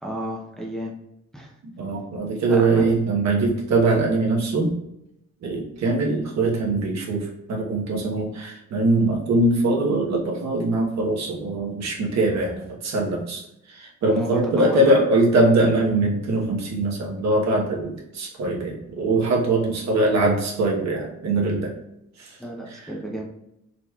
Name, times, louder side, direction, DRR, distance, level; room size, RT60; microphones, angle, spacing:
voice 1, 0.0-0.9 1.3-1.5 2.5-3.0 14.0-14.8 22.4-23.2, right 1 dB, ahead, -2 dB, 0.6 m, -31 dB
voice 2, 1.8-4.8 5.4-21.7 22.2-22.4 22.7-22.9, right 2 dB, 60° right, -2 dB, 1.1 m, -22 dB
3.9 x 3.0 x 2.3 m, 0.83 s
cardioid pair, 90°, 30 cm